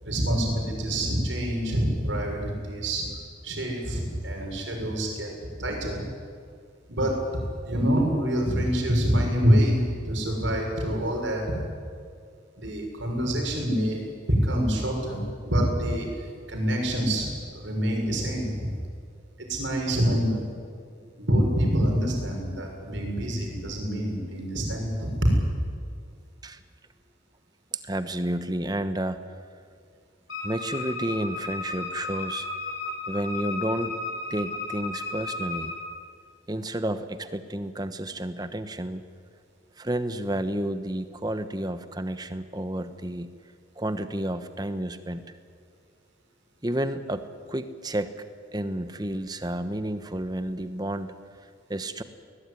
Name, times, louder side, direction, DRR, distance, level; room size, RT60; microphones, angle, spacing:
voice 1, 0.0-3.1 3.4-5.3 5.6-6.0 6.9-7.1 7.6-11.6 12.6-18.7 19.5-20.4 21.2-25.2, equal, 70° right, 1 dB, 6.5 m, -26 dB
voice 2, 27.7-29.2 30.4-32.5 33.1-33.9 34.3-35.8 36.5-39.0 39.8-43.3 43.8-45.2 46.6-48.1 48.5-51.1 51.7-52.0, right 1 dB, 20° right, 10 dB, 1.1 m, -31 dB
Wind instrument woodwind instrument, 30.3-35.8, left 3 dB, 60° left, 7.3 m, -34 dB
21.0 x 19.5 x 9.9 m, 2.2 s
head